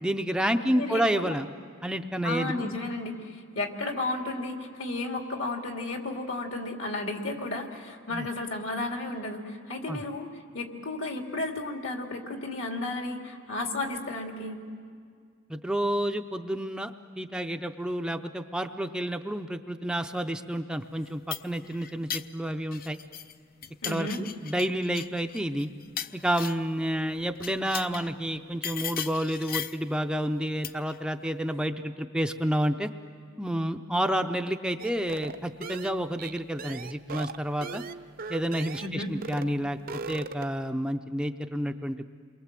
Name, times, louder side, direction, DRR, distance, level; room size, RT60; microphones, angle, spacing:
voice 1, 0.0-1.5 1.8-2.7 8.1-8.3 9.9-10.0 15.5-16.9 17.2-23.0 23.8-25.7 26.2-32.9 33.4-37.8 38.3-39.8 40.1-42.1, equal, 5° right, 6 dB, 0.5 m, -30 dB
voice 2, 0.7-1.4 2.2-3.2 3.5-14.6 23.8-24.2 38.8-39.1, left 2 dB, 70° left, 2 dB, 2.8 m, -33 dB
sound 1, 21.0-23.3 23.6-26.7 27.3-28.1 28.6-29.9 30.6-31.0, left 9 dB, 45° left, 0.6 m, -37 dB
sound 2, 34.8-39.0 39.2-39.5 39.8-40.6, right 4 dB, 45° right, 0.6 m, -39 dB
28.5 x 23.0 x 7.5 m, 2.1 s
head